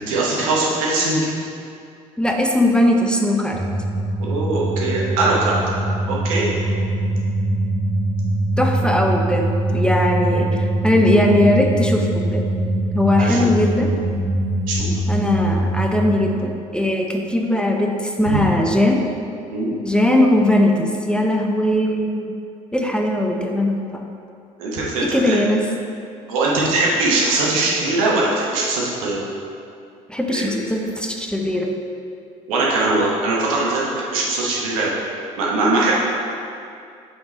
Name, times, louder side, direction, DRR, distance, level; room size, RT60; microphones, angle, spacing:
voice 1, 0.1-1.2 4.2-5.6 6.1-6.5 13.2-13.4 14.7-14.9 18.2-18.4 19.5-19.7 24.6-25.4 26.3-29.3 30.3-30.6 32.5-34.9 35.4-35.9, right 2 dB, 80° right, -4 dB, 1.1 m, -21 dB
voice 2, 2.2-3.6 8.6-9.5 9.7-12.4 12.9-13.9 15.1-19.0 19.8-22.3 22.7-24.1 25.0-25.7 30.1-31.8, left 1 dB, 5° left, 1 dB, 0.6 m, -19 dB
sound 1, 3.5-16.2, right 1 dB, 25° right, 1.1 m, -22 dB
5.2 x 4.9 x 3.9 m, 2.5 s
hypercardioid pair, 55°, 18 cm